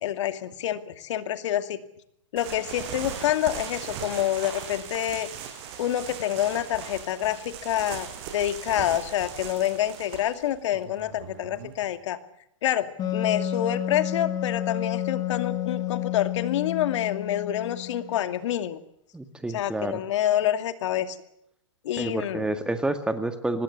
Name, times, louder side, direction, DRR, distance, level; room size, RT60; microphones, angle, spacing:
voice 1, 0.0-1.8 2.3-5.3 5.8-12.2 12.6-18.8 19.5-21.2 21.8-22.5, left 11 dB, 60° left, 10 dB, 2.5 m, -27 dB
sound 1, 2.4-11.9, right 8 dB, 45° right, 6.2 m, -39 dB
Wind instrument woodwind instrument, 13.0-18.4, left 11 dB, 25° left, 2.1 m, -30 dB
voice 2, 19.1-20.0 22.0-23.6, right 2 dB, 5° right, 9 dB, 1.9 m, -29 dB
25.0 x 20.5 x 8.4 m, 0.76 s
hypercardioid pair, 125°, 17 cm